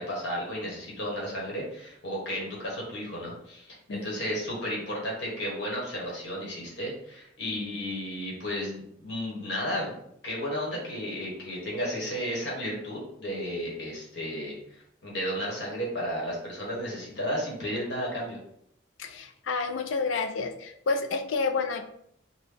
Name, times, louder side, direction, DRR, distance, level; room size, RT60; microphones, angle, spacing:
voice 1, 0.0-9.9 10.2-14.5 15.0-18.4, equal, 60° left, -3 dB, 1.3 m, -33 dB
voice 2, 19.0-21.8, left 4 dB, 85° left, 6 dB, 0.4 m, -29 dB
4.0 x 2.2 x 3.3 m, 0.71 s
head